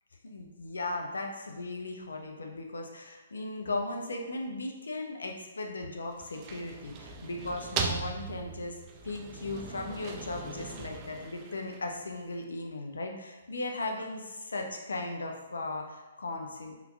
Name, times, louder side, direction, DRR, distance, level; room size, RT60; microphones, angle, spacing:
voice 1, 0.2-16.8, left 2 dB, 75° left, 2 dB, 0.5 m, -37 dB
sound 1, 6.1-12.1, right 5 dB, 30° right, 0.3 m, -39 dB
3.6 x 2.8 x 2.3 m, 1.2 s
figure-of-eight pair, 130°, 0 cm